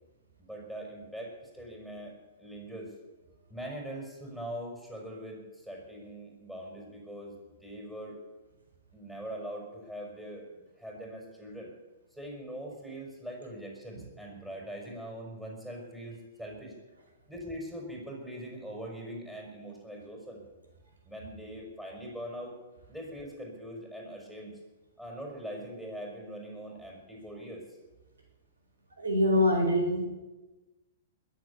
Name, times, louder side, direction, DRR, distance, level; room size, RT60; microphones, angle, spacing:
voice 1, 0.4-2.9 3.5-7.4 7.6-8.2 8.9-10.4 10.8-11.7 12.1-16.7 17.3-20.4 21.0-22.6 22.9-24.6 25.0-27.6, equal, 5° right, -2 dB, 5.2 m, -42 dB
voice 2, 29.0-30.1, left 1 dB, 85° right, 2 dB, 4.3 m, -24 dB
21.0 x 7.3 x 8.4 m, 1.1 s
hypercardioid pair, 115°, 0 cm